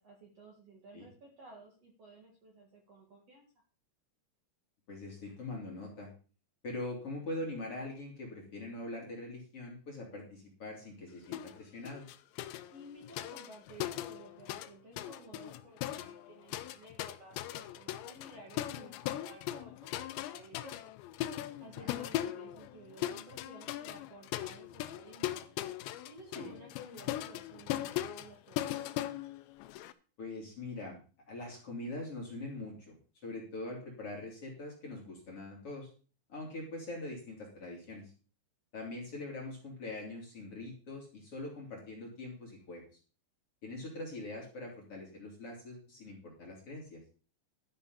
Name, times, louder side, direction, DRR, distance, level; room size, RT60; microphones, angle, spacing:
voice 1, 0.0-3.4 12.7-20.9 21.6-25.5 26.0-28.9, right 2 dB, 45° right, -1 dB, 2.4 m, -54 dB
voice 2, 4.9-6.1 6.6-12.1 21.8-22.0 26.3-26.5 30.2-31.0 31.3-32.9 33.2-35.9 36.3-38.1 38.7-42.8 43.6-47.0, left 2 dB, 35° left, -1 dB, 3.0 m, -43 dB
sound 1, 11.3-11.6 11.9-14.7 15.0-29.9, left 13 dB, 85° left, 2.9 m, -39 dB
12.0 x 9.8 x 4.0 m, 0.36 s
omnidirectional pair, 5.2 m